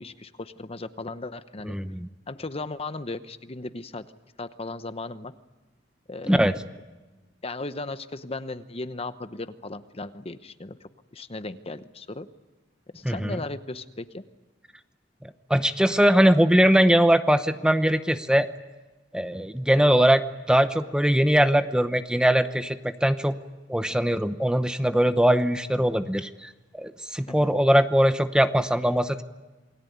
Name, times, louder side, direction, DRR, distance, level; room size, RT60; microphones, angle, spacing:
voice 1, 0.0-1.8 2.3-4.1 4.4-5.3 6.1-6.4 7.4-12.3 12.9-14.2 23.9-24.0 27.3-27.5, left 2 dB, 35° left, 11 dB, 0.9 m, -36 dB
voice 2, 1.7-2.1 6.3-6.5 13.0-13.4 15.5-18.5 19.1-23.3 23.7-29.2, equal, 5° right, 10 dB, 0.9 m, -21 dB
28.5 x 21.0 x 9.4 m, 1.2 s
head